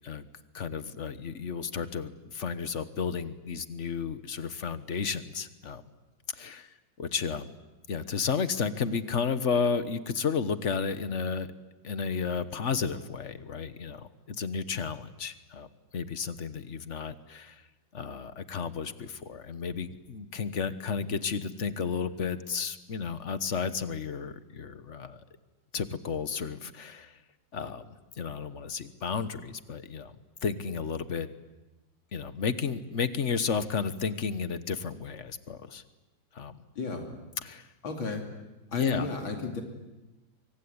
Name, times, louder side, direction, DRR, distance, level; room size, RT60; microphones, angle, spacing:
voice 1, 0.5-5.8 6.3-7.6 7.9-11.5 11.8-15.7 15.9-17.6 17.9-25.2 25.7-27.2 27.5-31.3 32.1-35.8 36.3-36.6 37.4-37.7 38.7-39.1, left 5 dB, 40° left, 12 dB, 1.3 m, -32 dB
voice 2, 36.8-37.2 37.8-38.2 38.7-39.6, left 4 dB, 80° left, 3 dB, 3.6 m, -33 dB
24.5 x 24.0 x 9.6 m, 1.1 s
omnidirectional pair, 2.2 m